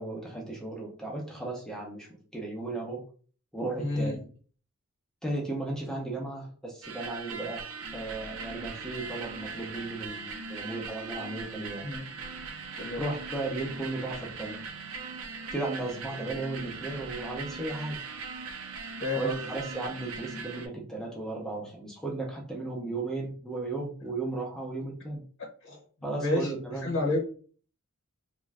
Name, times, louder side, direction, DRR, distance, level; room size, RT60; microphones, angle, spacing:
voice 1, 0.0-3.0 3.5-4.2 5.2-7.7 7.9-11.8 13.0-14.6 15.5-18.0 19.1-25.2 26.0-26.9, right 2 dB, ahead, -3 dB, 0.6 m, -35 dB
voice 2, 3.8-4.2 11.8-12.1 12.8-13.1 19.0-19.6 25.6-25.8 26.1-27.2, left 2 dB, 60° left, -2 dB, 0.8 m, -30 dB
sound 1, 6.8-20.7, right 5 dB, 65° right, 0.4 m, -40 dB
2.5 x 2.2 x 3.2 m, 0.42 s
head